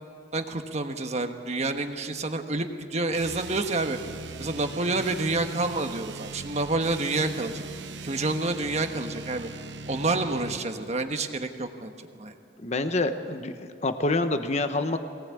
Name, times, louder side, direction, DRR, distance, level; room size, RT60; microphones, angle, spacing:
voice 1, 0.3-4.0 4.4-7.6 8.0-9.5 9.9-12.3, right 2 dB, 40° right, 6 dB, 1.3 m, -28 dB
sound 1, 3.1-10.6, right 4 dB, 75° right, 0.9 m, -40 dB
voice 2, 12.6-15.0, left 2 dB, 40° left, 8 dB, 1.0 m, -27 dB
23.0 x 18.5 x 8.4 m, 2.5 s
head